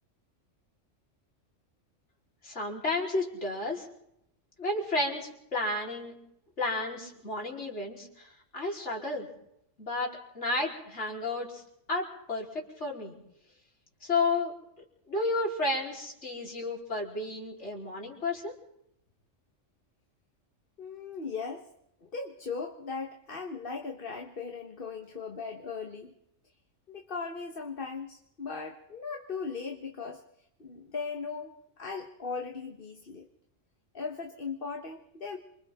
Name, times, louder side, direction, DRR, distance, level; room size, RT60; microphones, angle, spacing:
voice 1, 2.4-3.9 4.6-6.1 6.6-9.3 9.8-11.6 11.9-13.1 14.0-14.5 15.1-18.5, left 2 dB, 60° left, -1 dB, 4.6 m, -32 dB
voice 2, 20.8-21.7 22.0-26.1 26.9-30.2 30.6-33.3 33.9-35.4, left 5 dB, 45° left, 4 dB, 1.7 m, -38 dB
28.0 x 26.0 x 3.8 m, 0.76 s
omnidirectional pair, 1.3 m